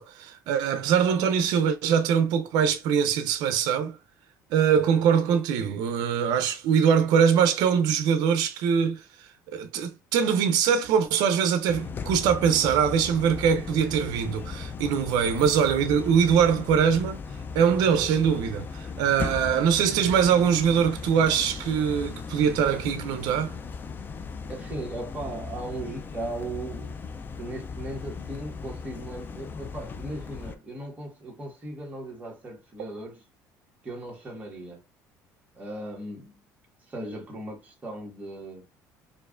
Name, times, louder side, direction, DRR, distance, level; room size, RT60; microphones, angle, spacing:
voice 1, 0.0-4.0 4.5-9.0 9.5-17.2 17.5-23.5, right 7 dB, 75° right, 0.5 m, -23 dB
sound 1, 11.7-30.6, left 5 dB, 30° left, 0.4 m, -37 dB
voice 2, 24.5-27.0 27.4-33.2 33.8-34.8 35.5-36.3 36.9-38.6, right 1 dB, 20° right, 1.5 m, -37 dB
4.5 x 2.5 x 2.4 m
cardioid pair, 120°, 7 cm